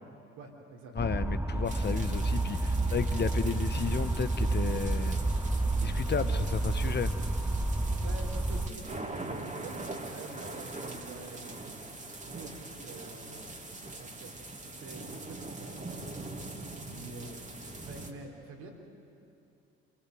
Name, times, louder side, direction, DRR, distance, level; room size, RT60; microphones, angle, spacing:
voice 1, 0.4-0.9 7.8-12.0 12.3-13.5 14.0-14.3 14.8-16.1 16.8-18.7, right 3 dB, 65° right, 0 dB, 4.0 m, -47 dB
voice 2, 0.9-5.2 5.8-7.1, left 6 dB, 30° left, 12 dB, 1.2 m, -33 dB
sound 1, 1.0-8.7, right 2 dB, 5° right, 1.0 m, -30 dB
sound 2, 1.7-18.1, right 2 dB, 20° right, 2.6 m, -43 dB
26.0 x 19.0 x 7.9 m, 2.7 s
figure-of-eight pair, 55°, 33 cm